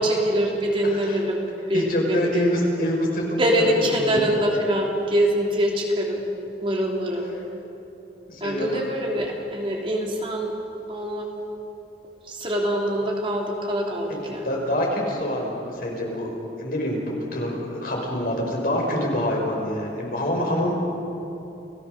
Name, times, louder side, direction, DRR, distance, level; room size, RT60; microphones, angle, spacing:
voice 1, 0.0-1.4 1.7-2.5 3.3-6.3 6.6-7.3 8.4-10.5 10.9-11.3 12.2-14.6, equal, 30° right, -1 dB, 3.2 m, -24 dB
voice 2, 1.7-3.5 3.8-3.9 8.3-8.9 14.4-20.7, left 1 dB, 55° left, -1 dB, 5.6 m, -26 dB
30.0 x 18.5 x 6.8 m, 3.0 s
head